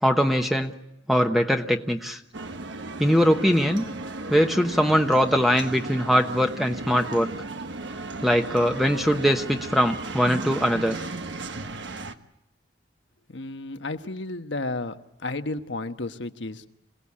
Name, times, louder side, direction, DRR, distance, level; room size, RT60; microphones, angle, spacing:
voice 1, 0.0-0.7 1.1-2.2 3.0-3.8 4.3-7.3 8.2-11.0, equal, ahead, 4 dB, 1.0 m, -21 dB
sound 1, 2.3-12.2, right 2 dB, 80° right, 1.2 m, -35 dB
voice 2, 13.3-14.9 15.2-16.7, left 2 dB, 85° left, 8 dB, 1.3 m, -32 dB
27.0 x 17.0 x 8.6 m, 0.87 s
head